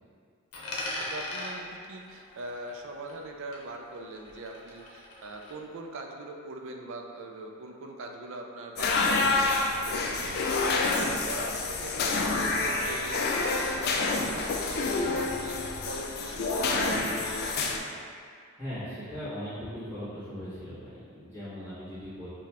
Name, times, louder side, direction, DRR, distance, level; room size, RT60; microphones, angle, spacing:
Coin (dropping), 0.5-3.3 3.5-5.5, left 1 dB, 85° left, 0.7 m, -40 dB
voice 1, 0.8-17.5, right 2 dB, 65° right, 2 dB, 0.4 m, -42 dB
sound 1, 8.8-17.8, left 3 dB, 45° left, 0.3 m, -28 dB
voice 2, 18.6-22.3, equal, 10° right, -16 dB, 1.3 m, -39 dB
4.8 x 2.3 x 2.9 m, 2.2 s
head